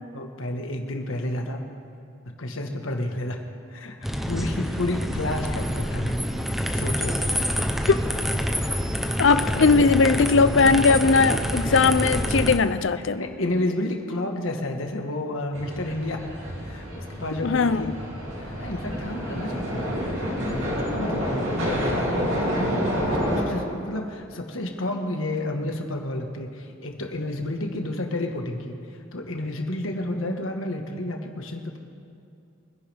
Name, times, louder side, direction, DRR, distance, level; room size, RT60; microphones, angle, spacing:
voice 1, 0.1-1.6 2.4-7.3 9.5-10.0 10.5-10.6 13.1-16.2 16.6-18.0 18.4-21.9 22.3-31.8, left 1 dB, 80° left, 3 dB, 1.5 m, -31 dB
sound 1, 4.0-12.6, equal, ahead, 0.7 m, -27 dB
voice 2, 9.2-13.2 17.4-18.0, left 4 dB, 65° left, 13 dB, 0.5 m, -19 dB
sound 2, 15.5-23.4, equal, 70° right, 2.9 m, -28 dB
24.5 x 10.5 x 3.5 m, 2.5 s
head